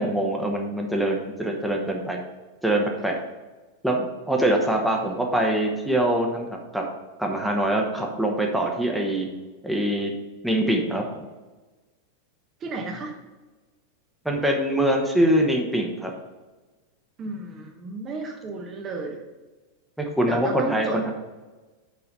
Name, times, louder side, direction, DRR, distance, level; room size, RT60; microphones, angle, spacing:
voice 1, 0.0-2.2 2.6-3.2 3.8-6.8 7.2-9.3 9.6-10.1 10.4-11.2 14.2-16.1 20.0-21.1, right 1 dB, ahead, 0 dB, 1.1 m, -24 dB
voice 2, 12.6-13.2 17.2-19.2 20.3-21.1, right 3 dB, 30° right, 2 dB, 1.0 m, -33 dB
6.5 x 5.6 x 5.3 m, 1.2 s
figure-of-eight pair, 90°, 0 cm